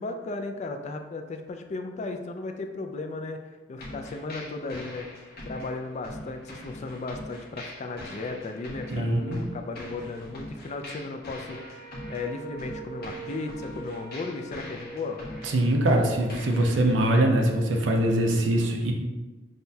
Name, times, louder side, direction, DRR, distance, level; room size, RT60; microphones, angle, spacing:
voice 1, 0.0-3.4 3.7-15.2, left 3 dB, 40° left, 5 dB, 0.4 m, -35 dB
sound 1, 3.8-17.2, left 1 dB, 55° left, 1.0 m, -43 dB
voice 2, 8.9-9.5 15.4-18.9, right 1 dB, 90° right, 2 dB, 0.6 m, -23 dB
Wind instrument woodwind instrument, 11.4-16.7, right 4 dB, ahead, 0.9 m, -44 dB
6.3 x 2.2 x 2.7 m, 1.3 s
head